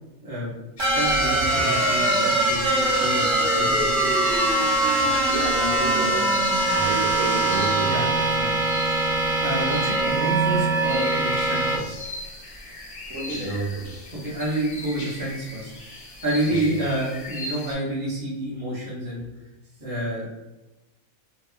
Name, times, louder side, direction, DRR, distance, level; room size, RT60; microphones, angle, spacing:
voice 1, 0.2-0.6 0.9-4.2 5.0-5.1 7.8-8.6 9.4-11.9 14.1-15.7 16.2-19.2 19.8-20.3, right 1 dB, 20° right, -7 dB, 0.6 m, -29 dB
sound 1, 0.8-17.7, left 1 dB, 55° left, 0.5 m, -38 dB
sound 2, 0.8-11.8, right 2 dB, 60° right, 0.9 m, -22 dB
voice 2, 5.3-8.0 13.1-14.0 16.7-16.8, right 2 dB, 80° right, -1 dB, 1.1 m, -30 dB
2.7 x 2.3 x 2.4 m, 1.1 s
omnidirectional pair, 1.5 m